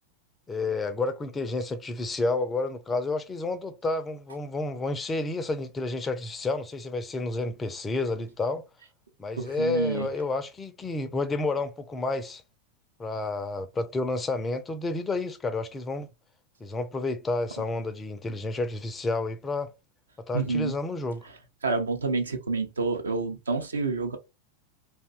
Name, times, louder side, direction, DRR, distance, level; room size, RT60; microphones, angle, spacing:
voice 1, 0.5-8.6 9.2-12.4 13.0-16.1 16.6-19.7 20.3-21.2, left 2 dB, 15° left, 0.4 m, -30 dB
voice 2, 9.4-10.1 20.3-20.7 21.6-24.2, right 4 dB, 70° right, 0.5 m, -28 dB
2.6 x 2.1 x 2.4 m
figure-of-eight pair, 90°, 0 cm